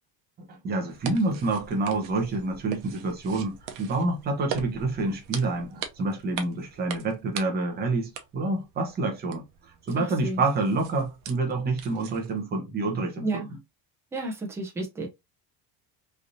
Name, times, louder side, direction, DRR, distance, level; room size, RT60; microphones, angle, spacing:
voice 1, 0.4-9.5 9.9-13.4, right 2 dB, 25° right, 0.7 m, -28 dB
sound 1, 0.9-12.4, right 8 dB, 80° right, 0.8 m, -42 dB
voice 2, 10.0-10.4 13.2-13.5 14.1-15.1, right 2 dB, 5° right, 0.3 m, -31 dB
3.3 x 2.6 x 2.5 m
cardioid pair, 180°, 41 cm